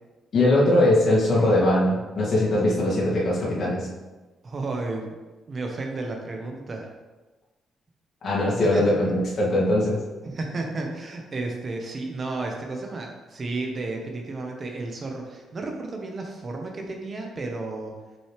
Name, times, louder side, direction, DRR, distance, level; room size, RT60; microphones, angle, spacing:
voice 1, 0.3-3.9 8.2-10.0, left 1 dB, 55° left, -5 dB, 2.1 m, -21 dB
voice 2, 4.4-5.2 5.5-6.8 8.6-9.0 10.2-17.9, right 3 dB, 40° right, 2 dB, 1.1 m, -32 dB
6.3 x 5.3 x 3.3 m, 1.2 s
cardioid pair, 90°, 0 cm